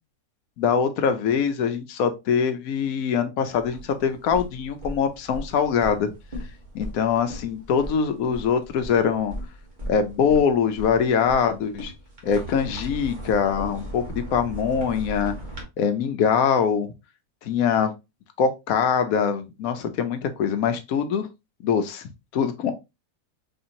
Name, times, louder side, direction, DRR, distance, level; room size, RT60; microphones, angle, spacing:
voice 1, 0.6-6.1 6.7-9.3 9.9-11.9 12.2-15.4 15.8-16.9 17.4-17.9 18.4-21.3 21.6-22.7, left 7 dB, 70° left, 1.0 m, -23 dB
sound 1, 3.5-15.6, right 1 dB, 35° right, 1.2 m, -38 dB
4.1 x 2.9 x 2.6 m
omnidirectional pair, 1.7 m